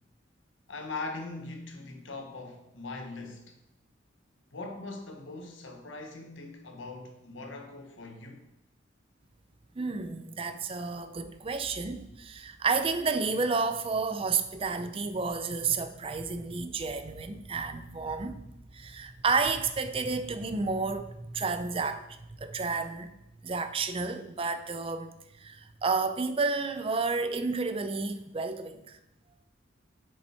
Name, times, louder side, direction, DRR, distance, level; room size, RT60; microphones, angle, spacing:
voice 1, 0.7-3.5 4.5-8.5, left 3 dB, 80° left, 1.2 m, -41 dB
voice 2, 9.8-18.4 18.7-23.1 23.4-29.0, right 4 dB, 30° right, 0.5 m, -31 dB
6.8 x 5.3 x 4.3 m
head